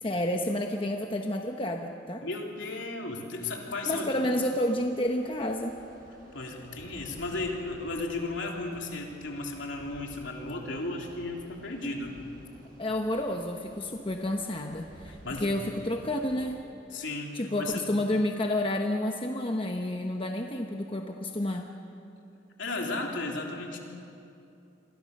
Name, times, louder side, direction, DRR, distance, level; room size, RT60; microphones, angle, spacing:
voice 1, 0.0-2.2 3.9-5.7 12.8-16.6 17.3-21.7, left 1 dB, 25° left, 3 dB, 1.0 m, -30 dB
voice 2, 2.2-4.1 6.3-12.1 15.2-15.5 16.9-17.8 22.6-23.8, left 2 dB, 65° left, 0 dB, 3.4 m, -34 dB
Thunder / Rain, 3.6-16.5, equal, 45° right, 7.3 m, -53 dB
28.5 x 22.5 x 6.7 m, 2.7 s
head